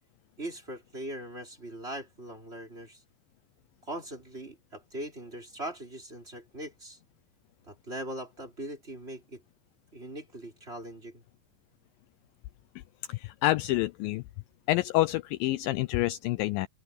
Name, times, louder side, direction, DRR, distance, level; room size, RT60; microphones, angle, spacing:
voice 1, 0.4-3.0 3.9-7.0 7.7-9.4 9.9-11.2, right 1 dB, 15° right, 4.2 m, -40 dB
voice 2, 13.1-14.2 14.7-16.7, left 17 dB, 85° left, 2.0 m, -27 dB
open air
omnidirectional pair, 4.7 m